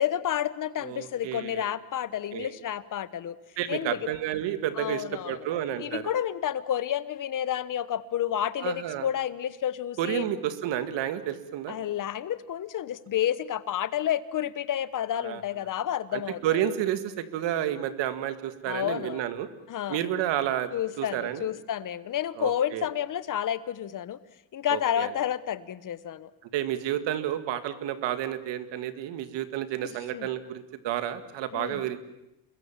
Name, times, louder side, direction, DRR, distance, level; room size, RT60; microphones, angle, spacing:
voice 1, 0.0-3.4 3.7-4.1 4.8-5.4 5.8-10.3 11.7-16.7 18.7-19.3 19.7-20.0 20.7-24.2 24.5-26.3 29.8-30.3 31.5-31.8, left 10 dB, 45° left, 16 dB, 1.1 m, -30 dB
voice 2, 0.8-1.6 2.3-2.5 3.6-6.1 8.6-9.1 10.0-11.7 15.2-15.4 16.1-19.5 19.9-20.7 21.0-21.5 22.4-22.9 24.7-25.1 26.5-32.0, right 11 dB, 70° right, 11 dB, 2.1 m, -30 dB
27.5 x 22.0 x 7.4 m, 0.88 s
cardioid pair, 115°, 45 cm